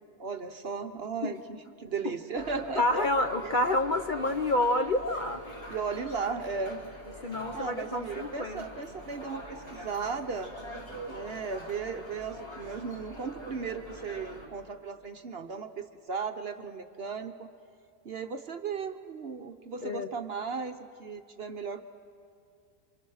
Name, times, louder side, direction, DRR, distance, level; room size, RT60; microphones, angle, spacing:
voice 1, 0.2-3.1 3.4-3.5 5.7-6.9 7.2-10.5 11.1-17.5 18.0-21.8, right 5 dB, 50° right, 8 dB, 1.0 m, -36 dB
sound 1, 2.3-14.5, equal, 25° left, 3.8 m, -44 dB
voice 2, 2.8-5.4 7.2-8.7 19.8-20.1, left 2 dB, 45° left, 7 dB, 0.7 m, -28 dB
28.0 x 25.5 x 6.3 m, 2.4 s
omnidirectional pair, 1.5 m